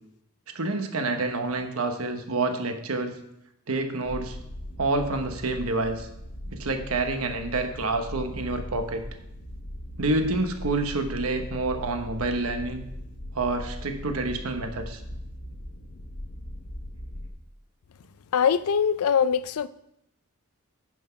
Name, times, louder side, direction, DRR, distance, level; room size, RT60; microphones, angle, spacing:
voice 1, 0.5-3.1 3.7-4.4 4.8-6.1 6.5-9.0 10.0-12.8 13.3-15.0, right 2 dB, 80° right, 1.1 m, -28 dB
sound 1, 4.0-17.3, left 1 dB, 60° left, 1.2 m, -39 dB
voice 2, 18.3-19.7, left 7 dB, 90° left, 0.5 m, -22 dB
9.1 x 5.9 x 5.8 m
head